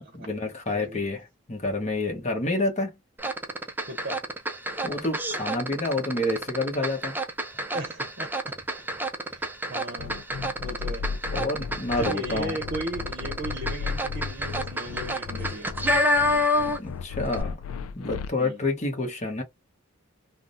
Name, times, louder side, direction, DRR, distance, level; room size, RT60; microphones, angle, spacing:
voice 1, 0.1-2.9 4.8-7.1 11.3-12.6 16.8-17.6 17.9-19.4, left 2 dB, 35° left, 1.0 m, -28 dB
sound 1, 3.2-17.0 17.2-17.4, equal, 10° right, 0.4 m, -29 dB
voice 2, 3.9-4.2 7.7-8.9 9.3-10.2 10.6-11.1 12.0-15.7 18.4-18.6, right 1 dB, 45° right, 0.7 m, -37 dB
sound 2, 10.0-18.3, left 5 dB, 90° left, 0.4 m, -35 dB
3.4 x 2.1 x 2.5 m
head